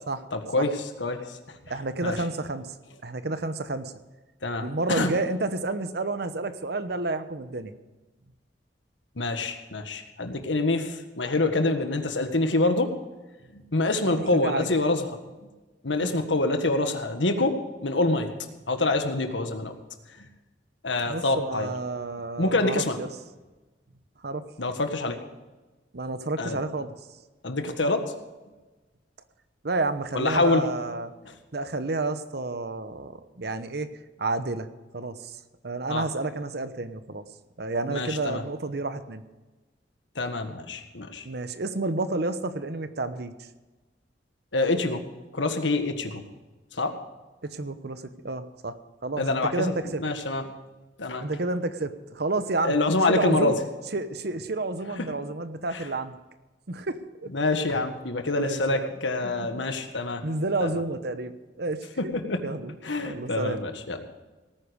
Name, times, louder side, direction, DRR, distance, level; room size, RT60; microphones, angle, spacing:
voice 1, 0.3-0.7 1.0-1.2 2.0-2.2 4.4-5.1 9.2-12.9 13.7-15.0 15.8-18.3 18.7-19.7 20.8-21.7 22.4-23.0 24.6-25.2 26.4-26.6 27.4-28.0 30.1-30.6 35.9-36.1 37.9-38.4 40.1-41.2 44.5-45.0 45.3-46.2 46.7-46.9 49.2-49.7 50.0-50.4 51.0-51.2 52.6-53.5 55.7-55.8 57.3-60.2 60.6-60.8 62.0-62.4 62.8-64.0, left 2 dB, 90° left, 7 dB, 1.6 m, -26 dB
voice 2, 1.7-2.7 3.0-3.9 4.5-7.7 14.1-14.7 16.0-16.1 21.1-23.1 24.2-24.4 25.9-26.9 29.6-31.1 31.5-33.9 34.2-34.7 34.9-35.4 35.6-37.2 37.6-39.2 41.2-43.3 47.4-48.8 49.0-50.0 51.2-52.8 53.1-53.6 53.9-56.2 56.7-57.3 58.4-58.9 59.2-59.6 60.2-61.9 62.4-62.7 63.0-63.6, right 2 dB, 60° right, 11 dB, 1.0 m, -30 dB
18.0 x 9.6 x 5.2 m, 1.2 s
head